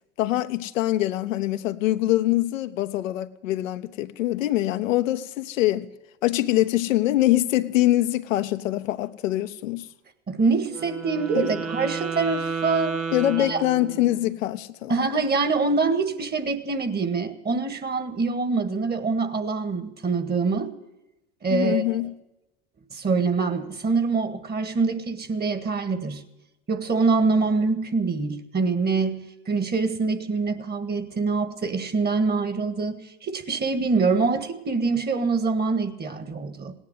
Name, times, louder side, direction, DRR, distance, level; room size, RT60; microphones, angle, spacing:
voice 1, 0.2-5.9 6.2-9.9 11.3-11.5 13.1-14.9 21.5-22.2, left 15 dB, 75° left, 0.9 m, -24 dB
voice 2, 10.3-13.0 13.4-13.6 14.9-20.7 21.4-21.8 22.9-26.2 26.7-36.7, right 4 dB, 25° right, 1.7 m, -25 dB
Wind instrument woodwind instrument, 10.7-14.3, right 5 dB, 85° right, 1.9 m, -32 dB
18.0 x 9.9 x 8.1 m
hypercardioid pair, 80°, 39 cm